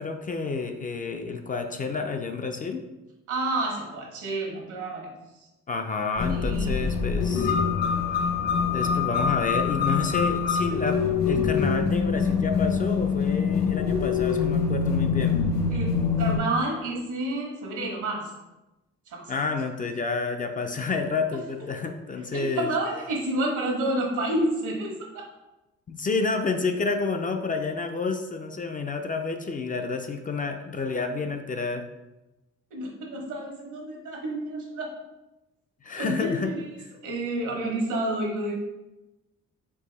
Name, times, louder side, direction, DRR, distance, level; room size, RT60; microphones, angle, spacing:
voice 1, 0.0-2.8 5.7-7.5 8.7-15.4 19.3-22.7 25.9-31.8 35.8-36.5, left 4 dB, 30° left, 5 dB, 0.4 m, -29 dB
voice 2, 3.3-5.1 6.3-6.9 15.7-18.3 19.1-19.4 22.3-25.3 32.7-35.0 36.0-36.6 37.0-38.5, right 1 dB, 80° right, 0 dB, 1.4 m, -29 dB
sound 1, 6.2-16.4, left 6 dB, 60° left, 1.0 m, -25 dB
4.7 x 2.7 x 3.9 m, 1.0 s
cardioid pair, 90°, 30 cm